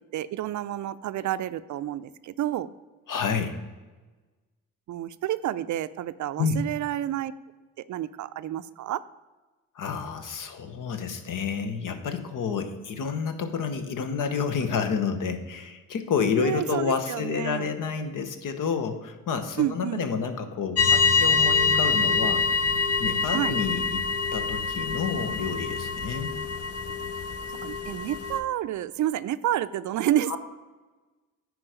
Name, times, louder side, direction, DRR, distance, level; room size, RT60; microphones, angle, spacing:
voice 1, 0.1-2.7 4.9-7.3 7.9-9.0 16.4-17.7 19.6-20.0 23.3-23.5 27.5-30.4, right 12 dB, 55° right, 14 dB, 0.4 m, -29 dB
voice 2, 3.1-3.6 6.4-6.6 9.7-22.5 23.0-24.0 24.3-26.3 30.3-30.4, left 6 dB, 65° left, 8 dB, 1.1 m, -29 dB
sound 1, 20.8-28.4, left 5 dB, 45° left, 0.8 m, -25 dB
9.8 x 4.8 x 5.0 m, 1.2 s
supercardioid pair, 60°, 35 cm